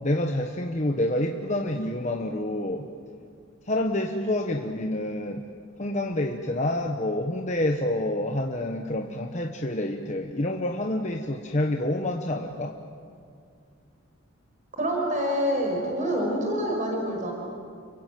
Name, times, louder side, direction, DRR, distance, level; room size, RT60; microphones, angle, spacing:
voice 1, 0.0-2.9 3.7-5.4 5.8-12.8, left 1 dB, 35° left, 3 dB, 1.2 m, -28 dB
voice 2, 14.8-17.3, equal, 35° right, 0 dB, 5.5 m, -26 dB
29.5 x 23.5 x 7.7 m, 2.3 s
head